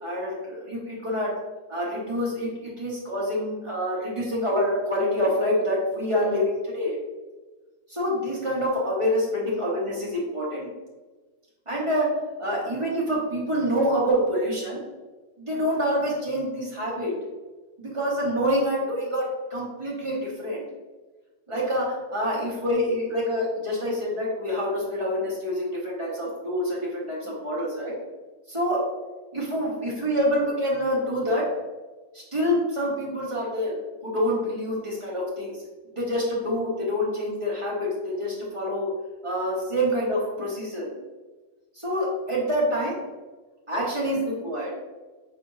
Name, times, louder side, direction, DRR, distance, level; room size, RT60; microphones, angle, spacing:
voice 1, 0.0-1.4 1.7-7.0 7.9-10.7 11.7-14.8 15.4-17.2 17.8-20.6 21.5-27.9 28.5-28.9 29.3-31.5 32.1-35.6 36.0-38.9 39.2-40.9 41.7-43.0 43.7-44.7, equal, 20° right, -5 dB, 1.2 m, -26 dB
5.0 x 3.9 x 2.6 m, 1.2 s
omnidirectional pair, 1.9 m